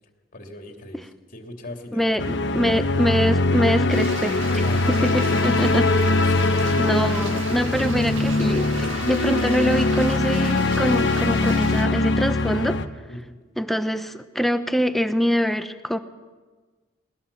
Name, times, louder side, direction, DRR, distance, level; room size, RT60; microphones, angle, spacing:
voice 1, 0.3-1.0 1.3-2.8 4.6-5.4 6.2-6.8 13.1-13.3, left 1 dB, 45° left, 3 dB, 2.9 m, -38 dB
voice 2, 1.9-6.4 6.8-12.8 13.6-16.0, equal, ahead, 9 dB, 0.8 m, -24 dB
sound 1, 2.2-12.9, left 2 dB, 60° left, 1.1 m, -22 dB
sound 2, 3.9-11.9, right 5 dB, 65° right, 1.8 m, -37 dB
20.0 x 19.5 x 7.1 m, 1.4 s
head